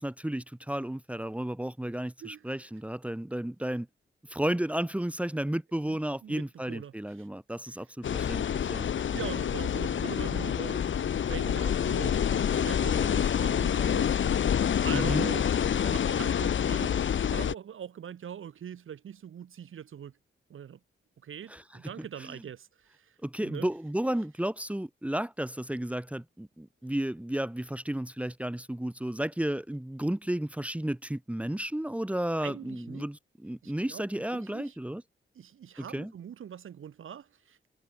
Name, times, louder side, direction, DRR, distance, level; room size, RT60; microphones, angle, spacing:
voice 1, 0.0-3.9 4.3-8.9 14.9-15.3 21.5-21.6 22.2-22.4 23.2-35.0 35.9-36.1, right 1 dB, 5° right, 2.0 m, -33 dB
voice 2, 2.2-2.5 5.9-7.3 7.7-7.8 8.9-14.2 14.8-15.5 15.8-20.1 20.5-20.8 21.2-23.7 32.4-33.0 33.6-34.0 34.3-34.8 35.3-37.6, right 9 dB, 80° right, 7.9 m, -42 dB
sound 1, 8.0-17.5, left 8 dB, 70° left, 1.8 m, -27 dB
wide cardioid pair, 110°, 20 cm